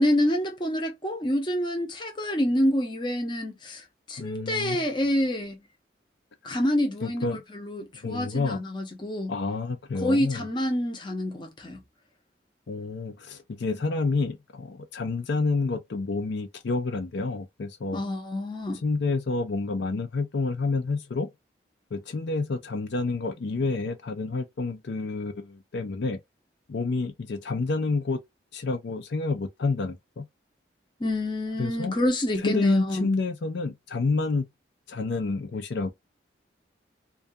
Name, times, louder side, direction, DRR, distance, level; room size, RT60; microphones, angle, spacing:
voice 1, 0.0-5.6 6.4-9.3 9.9-11.8 17.9-18.8 31.0-33.1, left 1 dB, 25° left, 0.7 m, -27 dB
voice 2, 4.2-4.8 7.0-7.4 8.0-8.6 9.3-10.4 12.7-18.0 18.8-21.3 21.9-26.2 26.7-28.2 28.5-30.2 31.6-31.9 32.4-34.5 34.9-35.9, left 3 dB, 70° left, 0.4 m, -29 dB
2.3 x 2.3 x 2.6 m
head